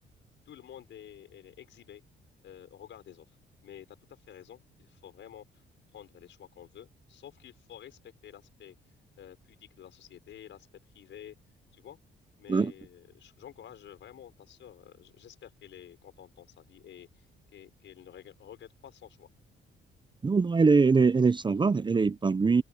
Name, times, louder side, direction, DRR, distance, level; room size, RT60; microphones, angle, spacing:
voice 1, 0.5-2.0 2.4-3.4 3.6-5.6 5.9-8.8 9.2-10.7 10.9-11.4 11.7-12.0 12.4-19.3, left 10 dB, 70° left, 5.9 m, -50 dB
voice 2, 20.2-22.6, right 4 dB, 25° right, 0.7 m, -23 dB
open air
cardioid pair, 90°, 20 cm